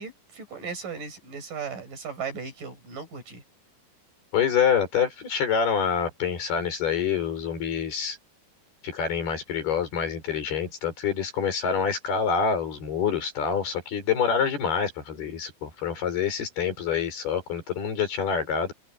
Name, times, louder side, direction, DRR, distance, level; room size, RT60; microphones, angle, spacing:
voice 1, 0.0-3.4, right 5 dB, 60° right, 8.1 m, -37 dB
voice 2, 4.3-8.2 8.8-18.7, left 7 dB, 85° left, 7.2 m, -26 dB
omnidirectional pair, 4.4 m